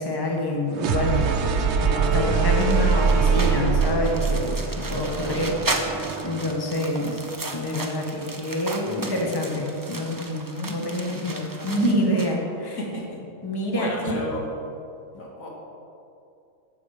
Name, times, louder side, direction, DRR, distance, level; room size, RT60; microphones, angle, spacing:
voice 1, 0.0-1.3 1.8-4.6 4.9-7.2 7.5-10.3 10.6-12.8 13.4-14.2, left 1 dB, 20° left, 0 dB, 1.4 m, -27 dB
sound 1, 0.7-6.6, right 5 dB, 60° right, 1.0 m, -25 dB
sound 2, 1.8-5.8, right 5 dB, 80° right, 1.2 m, -28 dB
sound 3, 2.5-12.3, right 2 dB, 20° right, 0.7 m, -35 dB
voice 2, 5.1-5.6 10.1-12.0 12.8-13.2 13.7-14.5 15.2-15.5, left 1 dB, 85° left, -3 dB, 2.5 m, -34 dB
12.0 x 8.2 x 5.0 m, 2.5 s
omnidirectional pair, 1.4 m